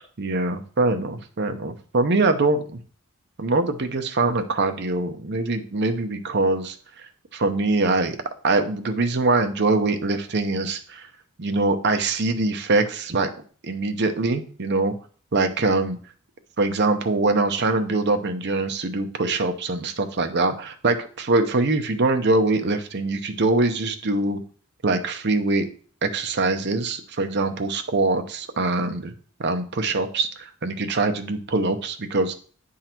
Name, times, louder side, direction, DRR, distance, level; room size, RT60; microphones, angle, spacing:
voice 1, 0.2-2.8 3.4-6.8 7.3-8.2 8.4-11.1 11.4-13.3 13.6-14.9 15.3-16.0 16.6-24.4 24.8-25.7 26.0-29.1 29.4-32.3, right 2 dB, 50° right, 7 dB, 0.8 m, -23 dB
9.0 x 3.8 x 4.4 m, 0.43 s
head